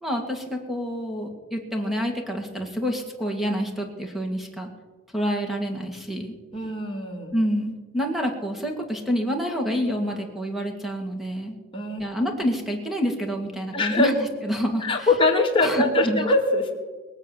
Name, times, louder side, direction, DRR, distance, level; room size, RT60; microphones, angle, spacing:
voice 1, 0.0-4.7 5.1-6.3 7.3-11.6 12.0-14.2 14.4-15.1 15.6-16.2, equal, ahead, 1 dB, 2.2 m, -27 dB
voice 2, 6.5-7.3 11.7-12.1 13.7-14.1 14.8-16.9, left 2 dB, 25° left, 0 dB, 2.4 m, -22 dB
21.5 x 7.4 x 7.4 m, 1.3 s
head